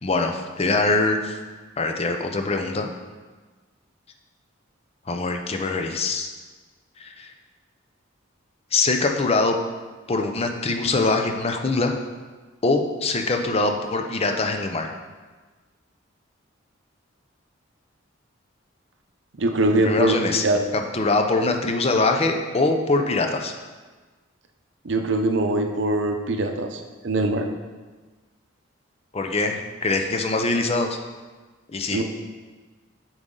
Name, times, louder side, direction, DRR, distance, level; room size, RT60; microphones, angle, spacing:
voice 1, 0.0-1.4 1.8-2.9 5.1-6.3 7.0-7.3 8.7-9.6 10.1-11.9 12.6-14.9 19.7-20.4 20.7-23.5 29.1-31.0 31.7-32.0, left 3 dB, 30° left, 4 dB, 0.6 m, -23 dB
voice 2, 19.4-20.2 20.4-20.6 24.8-27.5 31.9-32.0, right 2 dB, 65° right, 5 dB, 0.7 m, -22 dB
7.9 x 4.8 x 3.8 m, 1.3 s
head